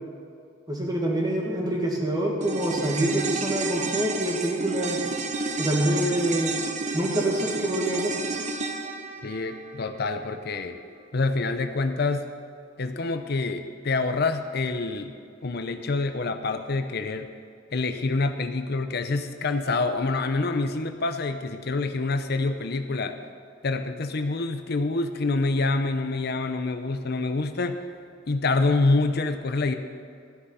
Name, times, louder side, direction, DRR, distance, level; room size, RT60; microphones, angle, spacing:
voice 1, 0.7-5.0 5.6-6.5 6.9-8.1, right 1 dB, 20° right, -1 dB, 2.0 m, -26 dB
sound 1, 2.4-10.9 11.2-11.3, right 3 dB, 40° right, 0.9 m, -32 dB
voice 2, 9.2-10.8 11.1-12.3 12.8-15.1 15.4-17.3 17.7-23.2 23.6-27.8 28.3-29.7, left 3 dB, 55° left, 8 dB, 0.7 m, -26 dB
14.5 x 10.0 x 5.6 m, 2.3 s
head